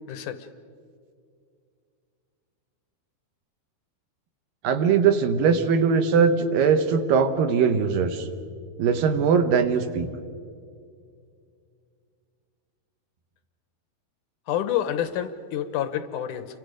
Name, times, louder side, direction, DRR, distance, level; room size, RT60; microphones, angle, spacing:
voice 1, 0.1-0.5 14.5-16.5, left 10 dB, 75° left, 10 dB, 2.0 m, -28 dB
voice 2, 4.6-8.3 8.8-10.1, right 6 dB, 70° right, 8 dB, 2.7 m, -21 dB
29.5 x 25.0 x 5.1 m, 2.3 s
omnidirectional pair, 4.5 m